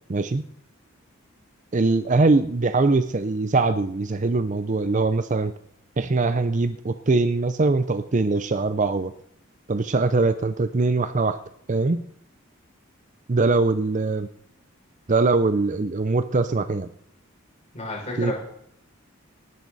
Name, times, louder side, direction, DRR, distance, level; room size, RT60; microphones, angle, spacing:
voice 1, 0.1-0.4 1.7-5.5 6.0-9.1 9.7-11.4 11.7-12.0 13.3-14.3 15.1-16.9 18.2-18.3, right 3 dB, 35° right, 12 dB, 0.5 m, -22 dB
voice 2, 17.7-18.3, left 2 dB, 35° left, -3 dB, 6.1 m, -31 dB
19.0 x 11.0 x 4.1 m, 0.69 s
head